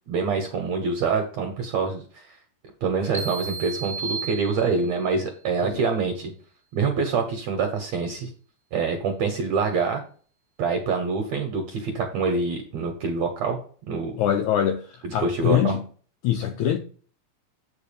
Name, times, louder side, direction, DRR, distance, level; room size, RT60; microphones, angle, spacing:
voice 1, 0.1-2.3 2.8-6.3 6.7-8.3 8.7-10.0 10.6-13.6 13.9-14.1 15.0-15.7, right 5 dB, 60° right, 2.1 m, -26 dB
sound 1, 3.1-5.1, right 4 dB, 5° right, 1.1 m, -33 dB
voice 2, 14.2-14.9 15.1-15.8 16.2-16.8, left 10 dB, 90° left, 1.7 m, -23 dB
8.1 x 5.0 x 5.1 m
omnidirectional pair, 4.1 m